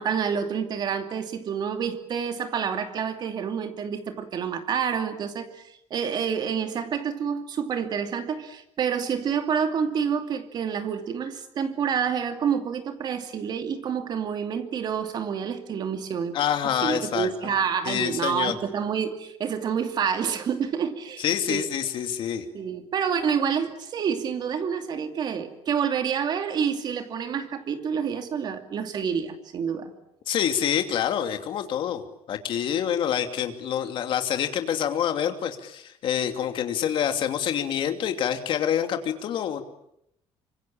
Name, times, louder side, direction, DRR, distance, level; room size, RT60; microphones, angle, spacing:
voice 1, 0.0-5.5 5.9-16.4 16.6-21.6 22.5-29.9, right 7 dB, 40° right, 7 dB, 2.7 m, -28 dB
voice 2, 16.3-17.3 17.8-18.5 21.2-22.4 30.3-32.0 32.3-39.6, left 9 dB, 50° left, 6 dB, 2.7 m, -26 dB
26.0 x 25.5 x 8.8 m, 0.77 s
cardioid pair, 175°, 11 cm